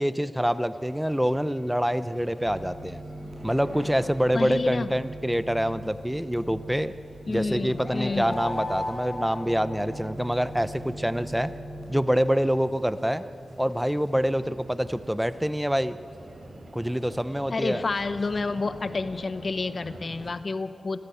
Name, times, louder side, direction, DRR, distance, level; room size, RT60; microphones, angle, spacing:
voice 1, 0.0-3.0 3.4-6.9 7.3-11.5 11.9-13.2 13.6-16.0 16.7-17.8, equal, 5° right, 13 dB, 0.7 m, -26 dB
sound 1, 0.7-20.3, right 1 dB, 40° right, 4.2 m, -48 dB
sound 2, 2.5-12.1, right 1 dB, 65° right, 5.1 m, -41 dB
voice 2, 4.3-4.9 7.3-8.4 17.5-21.0, left 3 dB, 45° left, 11 dB, 1.0 m, -29 dB
sound 3, 7.4-10.3, left 1 dB, 15° left, 5.4 m, -35 dB
28.0 x 15.0 x 8.6 m, 2.6 s
wide cardioid pair, 105°, 0 cm